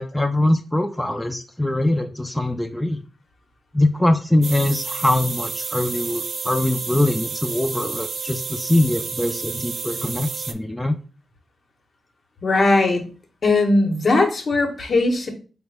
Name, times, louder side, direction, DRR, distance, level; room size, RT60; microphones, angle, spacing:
voice 1, 0.0-3.0 3.7-11.0, left 1 dB, 10° left, 5 dB, 0.4 m, -22 dB
sound 1, 4.4-10.5, right 5 dB, 60° right, 0.3 m, -30 dB
voice 2, 12.4-13.0 13.4-15.3, left 2 dB, 60° left, 2 dB, 0.9 m, -19 dB
3.7 x 2.1 x 3.3 m, 0.36 s
cardioid pair, 50°, 0 cm